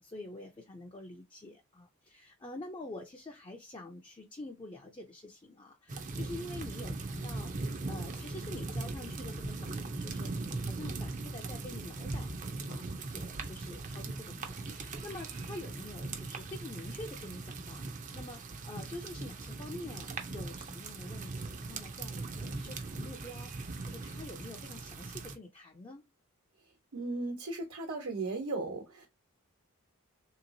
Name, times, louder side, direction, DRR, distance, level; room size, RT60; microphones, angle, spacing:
voice 1, 0.0-10.3 10.6-12.3 12.7-26.1, left 2 dB, 20° left, 0.5 m, -47 dB
sound 1, 5.9-25.4, right 3 dB, 35° right, 0.5 m, -40 dB
voice 2, 26.9-29.1, right 3 dB, 80° right, 1.2 m, -36 dB
3.4 x 2.9 x 2.6 m
head